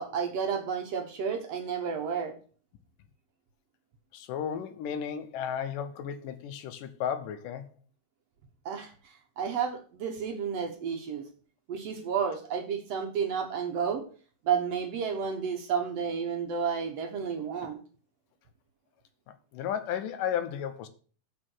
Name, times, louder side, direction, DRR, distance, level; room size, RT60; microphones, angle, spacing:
voice 1, 0.0-2.3 8.7-8.9 9.4-11.2 11.7-14.0 14.5-17.8, right 6 dB, 60° right, 1.9 m, -31 dB
voice 2, 4.1-7.7 17.6-17.7 19.3-20.9, left 8 dB, 85° left, 2.5 m, -34 dB
6.8 x 6.4 x 6.2 m
omnidirectional pair, 3.7 m